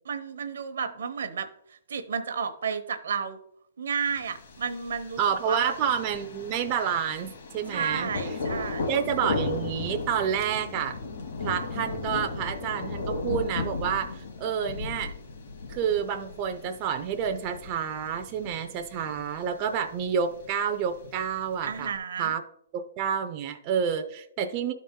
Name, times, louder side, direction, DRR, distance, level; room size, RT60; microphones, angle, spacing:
voice 1, 0.0-3.4 3.8-5.2 5.5-5.7 7.7-8.9 21.6-22.3, right 6 dB, 75° right, 10 dB, 0.8 m, -32 dB
Thunder, 4.0-22.0, left 3 dB, 60° left, 2.0 m, -36 dB
voice 2, 5.2-8.1 8.9-11.0 11.4-15.1 15.7-21.9 22.2-22.4 22.7-24.7, right 8 dB, 25° right, 6 dB, 0.5 m, -29 dB
12.5 x 4.2 x 3.7 m, 0.73 s
hypercardioid pair, 165°, 0 cm